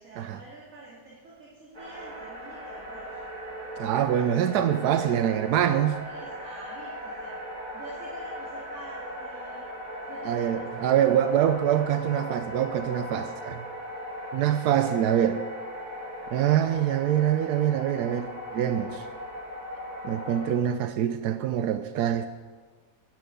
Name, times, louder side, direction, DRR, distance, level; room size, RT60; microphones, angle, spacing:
voice 1, 0.0-3.2 6.0-7.4 7.7-9.7 10.1-10.6, right 2 dB, 55° right, -6 dB, 2.7 m, -47 dB
sound 1, 1.7-20.6, equal, 25° right, 2.4 m, -38 dB
voice 2, 3.8-6.0 10.3-13.6 14.3-15.4 16.3-19.0 20.0-22.3, right 10 dB, 85° right, 10 dB, 1.2 m, -25 dB
10.5 x 8.0 x 9.1 m, 1.5 s
omnidirectional pair, 1.7 m